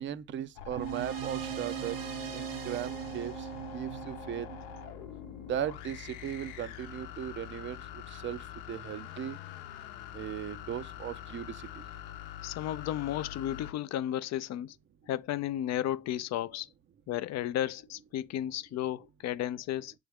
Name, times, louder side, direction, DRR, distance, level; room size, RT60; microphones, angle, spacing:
voice 1, 0.0-4.5 5.5-9.4 10.1-11.8, right 10 dB, 35° right, 0.5 m, -38 dB
sound 1, 0.6-13.7, left 10 dB, 80° left, 0.8 m, -44 dB
sound 2, 0.8-5.6, right 11 dB, 85° right, 1.1 m, -39 dB
voice 2, 12.4-14.8 15.1-16.7 17.1-19.9, left 12 dB, 50° left, 0.5 m, -33 dB
7.7 x 3.5 x 3.5 m
supercardioid pair, 95°, 36 cm